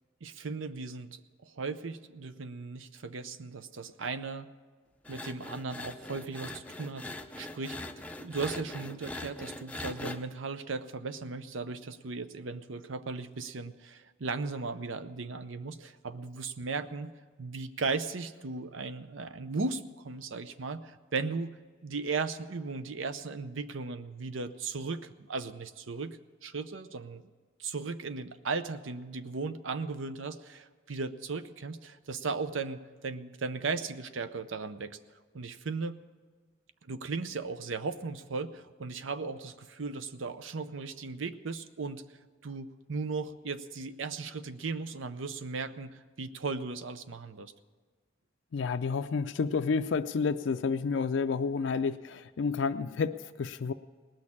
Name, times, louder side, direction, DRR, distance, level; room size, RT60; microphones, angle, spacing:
voice 1, 0.2-4.5 5.1-7.8 8.2-17.1 17.4-21.5 21.8-27.2 27.6-35.0 35.3-36.0 36.8-42.0 42.4-47.5, right 4 dB, 90° right, 12 dB, 0.7 m, -37 dB
sound 1, 5.0-10.2, left 2 dB, 5° left, 0.5 m, -42 dB
voice 2, 48.5-53.7, left 5 dB, 75° left, 8 dB, 0.4 m, -30 dB
19.0 x 6.4 x 8.5 m, 1.5 s
head